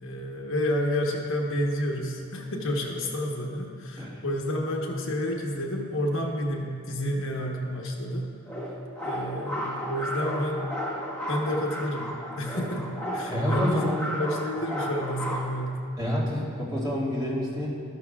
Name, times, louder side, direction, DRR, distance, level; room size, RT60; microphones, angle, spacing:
voice 1, 0.0-8.3 9.0-10.7 11.3-15.8, left 1 dB, 65° left, 0 dB, 1.2 m, -30 dB
sound 1, 8.5-15.5, equal, 5° left, 1.4 m, -33 dB
voice 2, 13.3-14.0 16.0-17.7, equal, 20° right, -7 dB, 2.2 m, -28 dB
13.5 x 12.5 x 2.4 m, 2.4 s
head